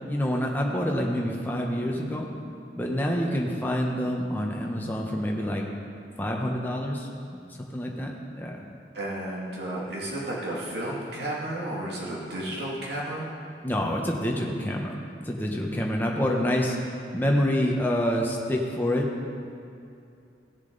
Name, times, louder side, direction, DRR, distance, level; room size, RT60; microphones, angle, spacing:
voice 1, 0.1-2.3 2.7-5.6 6.2-7.4 7.7-8.6 13.6-15.0 15.2-19.1, equal, 10° left, -1 dB, 1.0 m, -27 dB
voice 2, 8.9-13.3, right 1 dB, 65° right, -5 dB, 2.4 m, -32 dB
16.5 x 7.0 x 4.0 m, 2.6 s
head